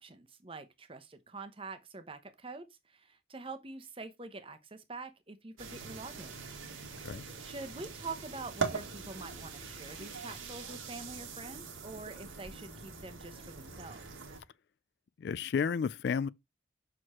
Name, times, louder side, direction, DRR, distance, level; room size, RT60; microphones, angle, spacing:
voice 1, 0.0-6.4 7.4-14.1, right 3 dB, 25° right, 0.9 m, -45 dB
sound 1, 5.6-14.4, right 4 dB, 90° right, 1.8 m, -42 dB
voice 2, 15.2-16.3, left 6 dB, 55° left, 0.3 m, -31 dB
6.3 x 4.7 x 4.2 m
head